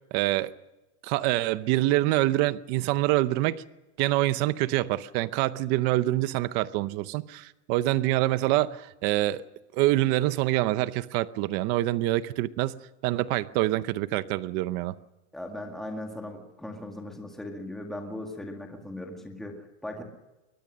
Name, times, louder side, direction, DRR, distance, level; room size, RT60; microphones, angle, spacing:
voice 1, 0.1-0.5 1.0-3.6 4.0-9.4 9.7-15.0, right 16 dB, 30° right, 0.7 m, -26 dB
voice 2, 15.3-20.0, left 1 dB, ahead, 2.0 m, -38 dB
23.0 x 20.0 x 6.4 m
supercardioid pair, 170°, 35 cm